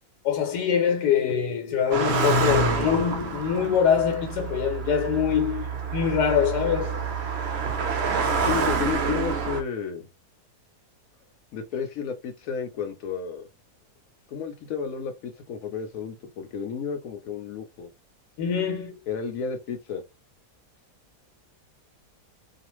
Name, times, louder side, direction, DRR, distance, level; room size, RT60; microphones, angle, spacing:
voice 1, 0.2-7.0 18.4-19.0, left 8 dB, 85° left, 1.2 m, -24 dB
Car passing by, 1.9-9.6, right 4 dB, 65° right, 0.6 m, -27 dB
voice 2, 8.5-10.1 11.5-13.5 14.3-17.9 19.1-20.0, left 7 dB, 70° left, 0.9 m, -32 dB
2.4 x 2.4 x 3.0 m
omnidirectional pair, 1.7 m